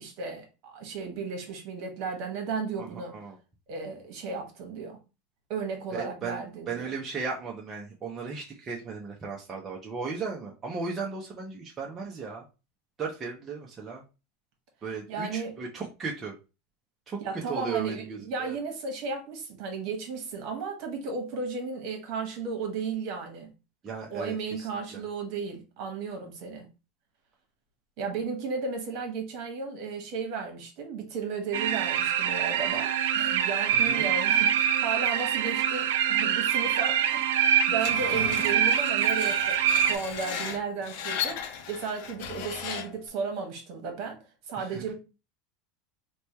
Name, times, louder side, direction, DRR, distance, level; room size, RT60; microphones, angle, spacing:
voice 1, 0.0-3.2 3.7-5.0 5.5-6.9 15.1-15.5 17.2-23.5 24.1-26.7 28.0-44.9, right 5 dB, 55° right, 1.1 m, -34 dB
voice 2, 5.9-12.4 13.0-14.0 14.8-16.4 17.1-17.2 17.5-18.6 23.8-25.0 33.7-34.1 44.6-44.8, right 5 dB, 20° right, 0.6 m, -36 dB
sound 1, 31.5-40.0, right 9 dB, 85° right, 0.4 m, -25 dB
Screech, 37.8-43.1, left 8 dB, 65° left, 0.6 m, -36 dB
3.1 x 2.2 x 4.1 m
supercardioid pair, 150°, 0 cm